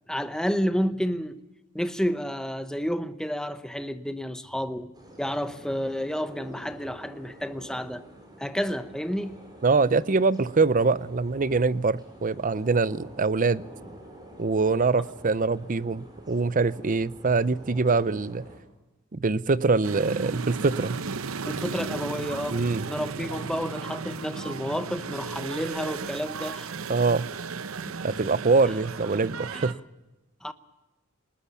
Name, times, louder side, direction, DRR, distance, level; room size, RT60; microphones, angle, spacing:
voice 1, 0.1-1.4 1.7-4.9 5.2-8.0 8.4-9.4 21.5-26.7 29.5-29.7 30.4-30.5, equal, 5° left, 0.8 m, -30 dB
sound 1, 4.9-18.6, right 1 dB, 20° right, 5.9 m, -48 dB
voice 2, 9.6-13.6 14.4-18.4 19.1-21.0 22.5-22.9 26.9-27.3 28.0-29.8, right 4 dB, 40° right, 0.6 m, -24 dB
sound 2, 19.8-29.7, right 5 dB, 80° right, 0.8 m, -35 dB
20.5 x 20.0 x 7.1 m
head